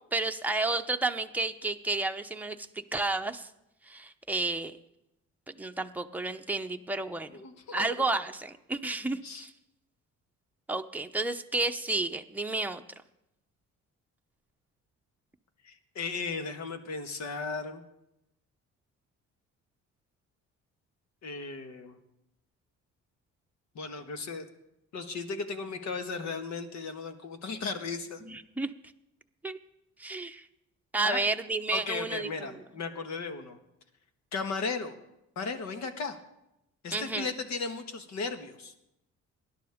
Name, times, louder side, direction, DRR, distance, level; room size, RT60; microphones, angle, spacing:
voice 1, 0.0-2.6 2.9-3.5 3.9-4.7 5.6-7.3 7.7-9.5 10.7-12.8 28.2-28.7 29.4-29.6 30.0-30.4 30.9-32.6 36.9-37.3, right 2 dB, 5° right, 5 dB, 0.8 m, -31 dB
voice 2, 7.3-7.9 9.2-9.5 15.6-17.8 21.2-22.0 23.7-24.4 24.9-28.2 31.0-31.2 31.7-33.6 34.3-34.9 35.3-36.2 36.8-38.7, left 4 dB, 65° left, 7 dB, 1.7 m, -36 dB
19.5 x 11.5 x 3.6 m, 0.85 s
cardioid pair, 90°, 30 cm